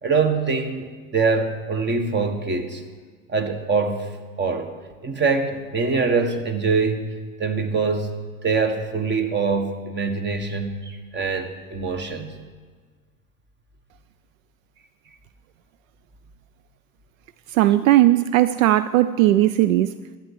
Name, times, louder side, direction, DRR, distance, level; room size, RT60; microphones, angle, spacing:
voice 1, 0.0-2.8 3.3-4.1 4.4-4.7 5.0-8.1 8.4-12.3, right 4 dB, 25° right, 7 dB, 1.6 m, -24 dB
voice 2, 17.5-19.9, right 14 dB, 70° right, 14 dB, 0.5 m, -17 dB
12.0 x 8.8 x 6.8 m, 1.5 s
hypercardioid pair, 80°, 41 cm